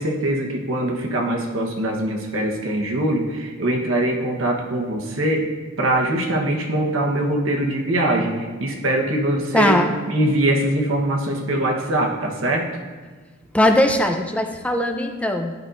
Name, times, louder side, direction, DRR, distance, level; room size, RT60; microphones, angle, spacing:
voice 1, 0.0-5.5 5.8-9.8 10.1-12.6, right 1 dB, 75° right, 1 dB, 1.1 m, -22 dB
voice 2, 9.5-9.9 13.5-15.5, left 1 dB, 5° left, 5 dB, 0.4 m, -19 dB
10.5 x 5.2 x 2.5 m, 1.4 s
head